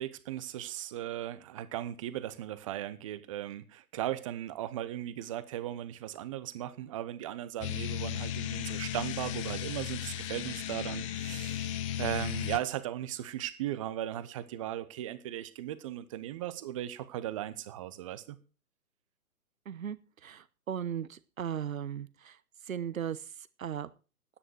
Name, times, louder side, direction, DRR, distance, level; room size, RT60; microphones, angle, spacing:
voice 1, 0.0-18.4, right 12 dB, 20° right, 0.8 m, -37 dB
sound 1, 7.6-12.6, left 10 dB, 20° left, 0.8 m, -35 dB
voice 2, 19.7-20.0 20.2-22.4 22.7-23.2 23.6-23.9, right 9 dB, 65° right, 1.1 m, -36 dB
11.0 x 9.9 x 6.3 m
figure-of-eight pair, 130°, 44 cm